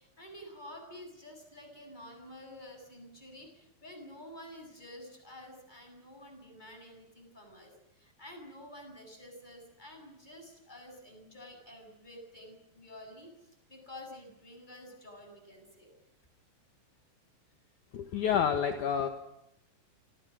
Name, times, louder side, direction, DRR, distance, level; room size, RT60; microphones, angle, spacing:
voice 1, 0.0-7.7 8.0-15.9, left 1 dB, 10° left, 4 dB, 7.0 m, -50 dB
voice 2, 17.9-19.1, left 8 dB, 60° left, 6 dB, 2.8 m, -28 dB
29.5 x 26.5 x 6.4 m, 0.81 s
omnidirectional pair, 4.2 m